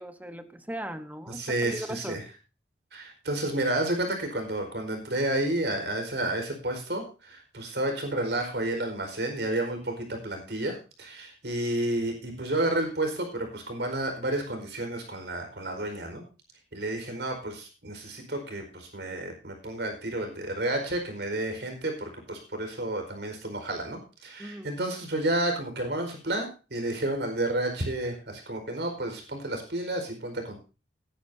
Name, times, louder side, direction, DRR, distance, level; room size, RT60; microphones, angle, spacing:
voice 1, 0.0-2.2 24.4-24.7, right 1 dB, 10° right, 1.2 m, -38 dB
voice 2, 1.3-2.2 2.9-16.2 16.7-30.6, right 1 dB, 70° right, 4.8 m, -31 dB
19.5 x 10.5 x 2.8 m
head